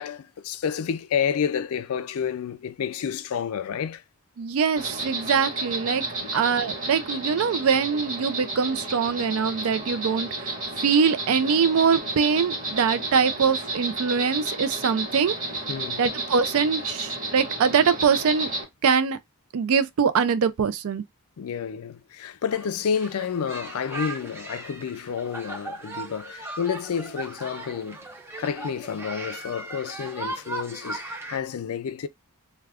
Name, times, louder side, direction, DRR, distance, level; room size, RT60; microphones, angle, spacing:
voice 1, 0.0-4.0 6.2-6.3 15.7-16.0 21.4-28.0 28.4-32.1, left 7 dB, 70° left, 0.4 m, -30 dB
voice 2, 4.4-6.0 6.3-10.5 10.8-15.4 16.0-18.5 18.8-19.2 19.5-21.0, right 6 dB, 65° right, 0.4 m, -23 dB
Insect, 4.8-18.6, right 2 dB, 35° right, 1.3 m, -32 dB
sound 1, 22.5-31.4, right 2 dB, 10° right, 0.5 m, -38 dB
2.3 x 2.2 x 3.3 m
head